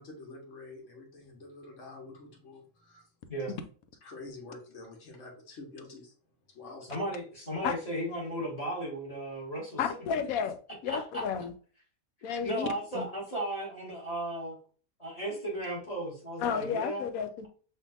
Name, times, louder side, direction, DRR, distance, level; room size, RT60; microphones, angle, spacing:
voice 1, 0.0-3.0 4.0-6.1 6.5-6.9, left 3 dB, 60° left, 1.6 m, -47 dB
voice 2, 6.8-9.8 10.9-11.2 12.4-14.6 15.0-17.0, right 1 dB, 25° left, 2.0 m, -35 dB
voice 3, 9.8-10.6 10.8-11.5 12.2-12.7 12.9-13.1 16.4-17.5, left 7 dB, 80° left, 1.0 m, -32 dB
5.4 x 2.7 x 2.5 m
omnidirectional pair, 1.5 m